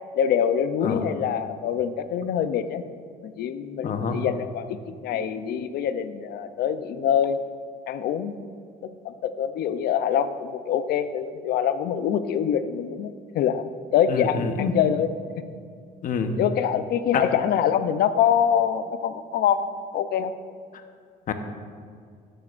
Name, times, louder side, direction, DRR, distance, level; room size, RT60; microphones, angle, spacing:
voice 1, 0.1-2.8 3.2-7.4 7.9-8.4 9.0-13.6 13.9-15.1 16.4-20.3, left 8 dB, 70° left, 11 dB, 0.6 m, -25 dB
voice 2, 3.8-4.2 14.1-14.8 16.0-16.3 17.1-17.2 21.3-21.4, left 6 dB, 55° left, 6 dB, 1.0 m, -26 dB
13.0 x 11.5 x 2.6 m, 2.2 s
cardioid pair, 110°, 17 cm